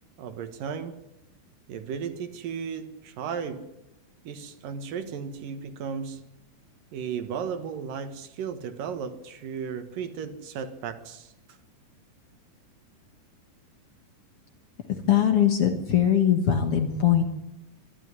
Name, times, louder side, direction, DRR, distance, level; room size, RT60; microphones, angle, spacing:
voice 1, 0.2-1.0 1.7-3.7 4.2-6.2 6.9-11.3, right 7 dB, 75° right, 9 dB, 3.1 m, -35 dB
voice 2, 14.9-17.2, left 9 dB, 55° left, 7 dB, 1.9 m, -21 dB
23.5 x 12.5 x 9.8 m, 0.89 s
omnidirectional pair, 4.0 m